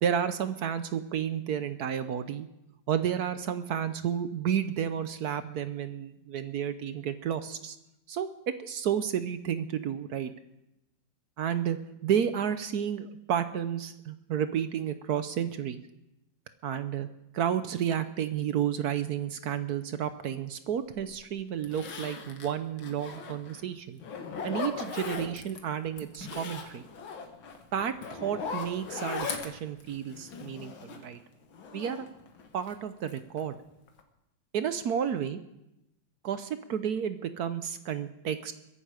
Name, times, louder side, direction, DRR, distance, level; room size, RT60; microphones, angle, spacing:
voice 1, 0.0-2.5 2.9-7.8 8.1-10.3 11.4-15.8 16.6-17.1 17.3-24.0 24.4-26.8 27.7-31.2 31.7-32.0 32.5-33.5 34.5-35.4 36.2-38.5, right 8 dB, 65° right, 11 dB, 1.1 m, -31 dB
Zipper (clothing), 21.0-21.1 21.6-23.6 24.0-25.6 26.0-31.1 31.5-32.7 33.1-33.6 33.9-34.0, left 5 dB, 85° left, 2.3 m, -39 dB
22.5 x 11.0 x 5.0 m, 0.89 s
omnidirectional pair, 2.1 m